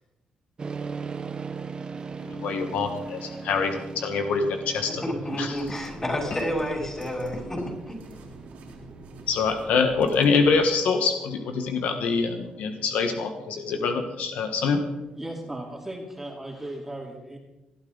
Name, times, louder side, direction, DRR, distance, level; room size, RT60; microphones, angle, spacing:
sound 1, 0.6-16.1, right 5 dB, 35° right, 1.1 m, -41 dB
sound 2, 1.8-8.5, left 2 dB, 55° left, 4.0 m, -45 dB
voice 1, 2.2-5.0 5.4-5.6 9.3-14.8, left 4 dB, 80° left, 6 dB, 1.4 m, -25 dB
voice 2, 5.0-8.0, equal, 20° left, -1 dB, 5.7 m, -30 dB
sound 3, 5.4-10.8, right 3 dB, 85° right, 3.4 m, -46 dB
voice 3, 15.1-17.4, right 1 dB, 10° right, 0 dB, 2.7 m, -36 dB
20.0 x 12.5 x 4.0 m, 1.0 s
cardioid pair, 100°, 2 cm